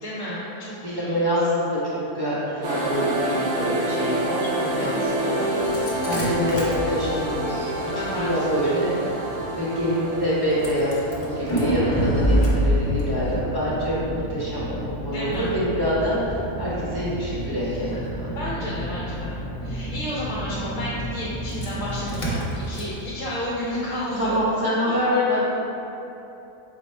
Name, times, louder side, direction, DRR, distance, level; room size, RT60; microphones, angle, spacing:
voice 1, 0.0-1.3 7.9-8.3 8.6-8.7 15.0-15.5 18.3-19.4 19.6-24.4 24.9-25.0, left 1 dB, 65° left, -7 dB, 1.0 m, -32 dB
voice 2, 0.8-8.9 9.5-18.3 24.2-25.4, equal, 20° right, -10 dB, 0.8 m, -26 dB
sound 1, 2.6-12.9, right 1 dB, 65° right, 1.0 m, -28 dB
Engine starting, 5.5-24.5, equal, 45° left, 0.4 m, -29 dB
4.9 x 2.1 x 4.2 m, 3.0 s
omnidirectional pair, 1.6 m